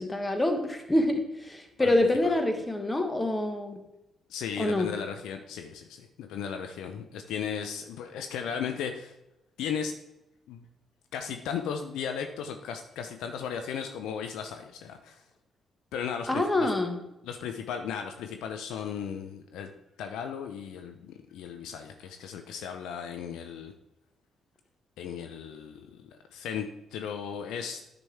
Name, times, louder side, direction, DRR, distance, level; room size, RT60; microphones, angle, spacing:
voice 1, 0.0-3.8 4.6-4.9 16.3-17.0, left 1 dB, 20° left, 6 dB, 1.5 m, -26 dB
voice 2, 4.3-9.1 9.6-9.9 10.5-10.7 11.1-15.2 15.9-16.7 17.2-19.7 20.0-23.7 25.0-28.0, left 7 dB, 70° left, 6 dB, 0.5 m, -36 dB
10.0 x 6.0 x 3.5 m, 0.90 s
hypercardioid pair, 45°, 0 cm